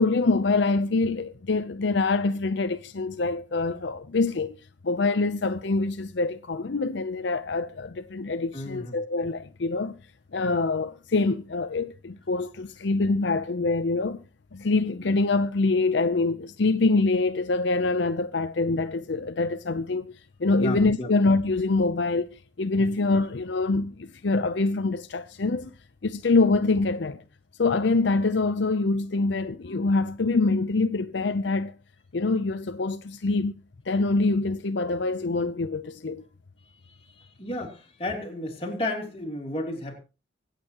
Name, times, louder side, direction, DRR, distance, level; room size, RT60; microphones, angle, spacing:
voice 1, 0.0-4.5 4.8-10.0 10.3-14.2 14.5-20.1 20.4-25.7 26.0-27.2 27.6-31.7 32.1-33.5 33.9-36.2, left 3 dB, 70° left, 0.6 m, -25 dB
voice 2, 8.5-9.0 10.4-10.5 20.6-21.1 22.8-22.9 37.2-40.0, left 1 dB, 30° left, 3.2 m, -33 dB
24.5 x 8.4 x 3.0 m
head